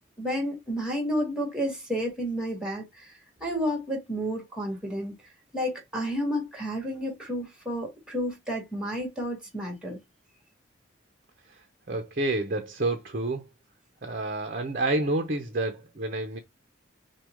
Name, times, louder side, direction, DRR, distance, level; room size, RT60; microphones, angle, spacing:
voice 1, 0.2-5.2 5.5-10.0, equal, 5° right, 1.9 m, -31 dB
voice 2, 11.9-13.5 14.0-16.4, right 2 dB, 45° right, 0.7 m, -29 dB
6.1 x 2.4 x 3.5 m
head